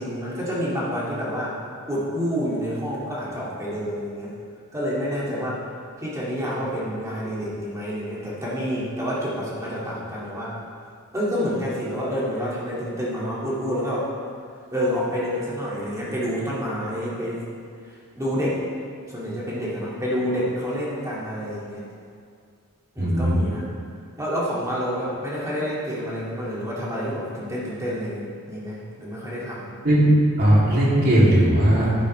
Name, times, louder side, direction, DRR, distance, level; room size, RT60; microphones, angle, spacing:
voice 1, 0.0-1.6 1.9-4.3 4.7-5.6 6.0-10.6 11.1-14.1 14.7-17.4 17.9-18.6 19.1-21.9 23.0-23.7 24.2-29.7, equal, 15° right, -7 dB, 2.1 m, -28 dB
voice 2, 23.0-23.4 29.8-30.1 30.4-32.1, right 1 dB, 45° right, -7 dB, 2.8 m, -18 dB
11.0 x 10.5 x 3.3 m, 2.2 s
head